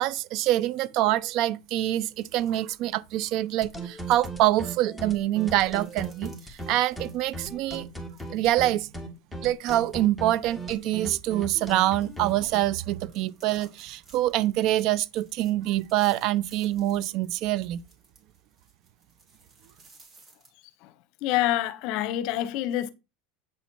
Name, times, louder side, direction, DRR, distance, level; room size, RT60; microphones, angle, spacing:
voice 1, 0.0-7.9 8.3-8.9 9.4-17.8, right 14 dB, 50° right, 0.5 m, -25 dB
sound 1, 1.9-3.7 4.5-8.7 9.0-9.2 9.7-9.8 10.3-20.5, right 3 dB, 20° right, 2.9 m, -58 dB
sound 2, 3.6-12.6, right 2 dB, ahead, 1.7 m, -37 dB
voice 2, 21.2-22.9, left 13 dB, 55° left, 0.8 m, -27 dB
8.2 x 4.0 x 4.5 m
supercardioid pair, 135°, 0 cm